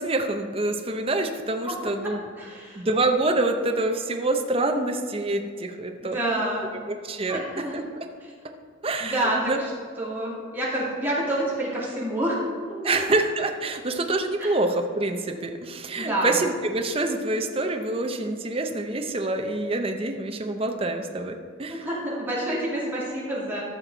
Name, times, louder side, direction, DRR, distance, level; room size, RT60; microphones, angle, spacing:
voice 1, 0.0-2.3 2.7-6.2 6.9-7.4 7.7-7.8 8.8-9.6 12.8-21.9, right 2 dB, 30° right, 4 dB, 0.6 m, -26 dB
voice 2, 2.4-2.8 6.0-6.6 7.3-7.8 8.2-8.3 9.0-9.7 10.0-12.4 12.8-13.0 14.4-14.5 16.0-16.4 21.7-23.6, right 1 dB, 10° right, -7 dB, 2.7 m, -28 dB
14.5 x 6.0 x 4.0 m, 2.1 s
head